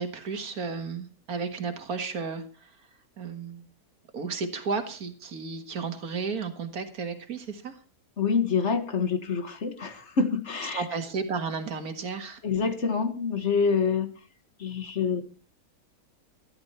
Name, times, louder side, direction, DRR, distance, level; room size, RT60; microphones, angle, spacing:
voice 1, 0.0-2.4 3.2-3.7 4.1-7.7 10.7-12.4, right 5 dB, 75° right, 7 dB, 2.2 m, -33 dB
voice 2, 8.2-10.8 12.4-14.1 14.6-15.2, left 5 dB, 50° left, 9 dB, 1.7 m, -26 dB
13.5 x 13.0 x 4.3 m, 0.36 s
omnidirectional pair, 1.6 m